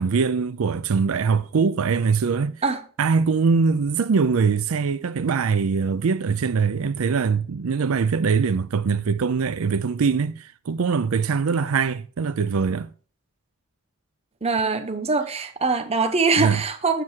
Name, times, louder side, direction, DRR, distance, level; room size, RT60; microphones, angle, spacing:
voice 1, 0.0-2.6 3.0-12.9 16.4-16.6, right 5 dB, 75° right, 0.5 m, -22 dB
voice 2, 14.4-17.0, right 4 dB, 30° right, 0.9 m, -23 dB
7.7 x 7.7 x 4.5 m
head